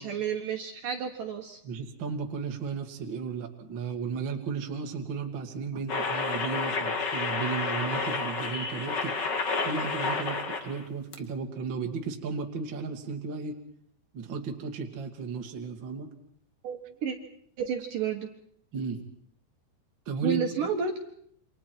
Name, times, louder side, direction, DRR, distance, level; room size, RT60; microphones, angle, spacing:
voice 1, 0.0-1.6 16.6-17.2 17.6-18.3 20.2-21.0, right 6 dB, 60° right, 2 dB, 2.6 m, -31 dB
voice 2, 1.6-9.1 9.6-13.6 14.1-16.1 18.7-19.0 20.1-20.7, right 5 dB, 35° right, 2 dB, 2.0 m, -34 dB
sound 1, 5.9-10.8 11.1-11.2, left 4 dB, 85° left, 0.9 m, -30 dB
28.5 x 26.5 x 4.6 m, 0.64 s
omnidirectional pair, 5.1 m